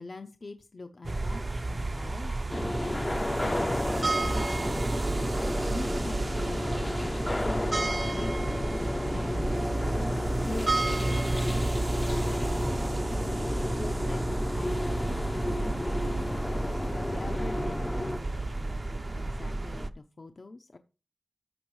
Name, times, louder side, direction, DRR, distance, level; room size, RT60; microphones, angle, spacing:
voice 1, 0.0-2.3 2.8-5.1 5.7-7.1 7.4-9.7 10.4-12.6 13.5-16.2 16.9-20.8, left 3 dB, 60° left, 6 dB, 0.8 m, -44 dB
sound 1, 1.0-19.9, right 2 dB, 45° right, 0.7 m, -31 dB
sound 2, 2.5-18.2, left 1 dB, 25° left, 0.6 m, -32 dB
14.0 x 6.9 x 3.2 m, 0.32 s
wide cardioid pair, 75°, 0 cm